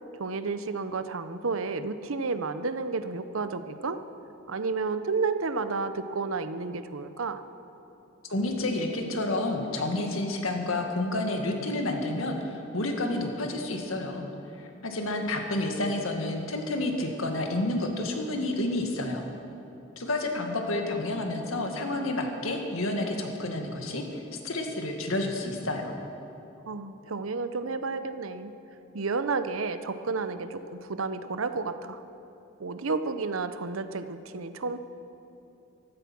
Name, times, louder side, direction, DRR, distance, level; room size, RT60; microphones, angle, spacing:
voice 1, 0.1-4.0 4.5-7.4 26.7-28.5 28.9-32.0 32.6-34.8, right 4 dB, 85° right, 11 dB, 0.7 m, -31 dB
voice 2, 8.3-14.2 14.6-19.2 19.9-25.9, left 2 dB, 85° left, 3 dB, 1.9 m, -30 dB
15.5 x 13.0 x 6.1 m, 2.8 s
head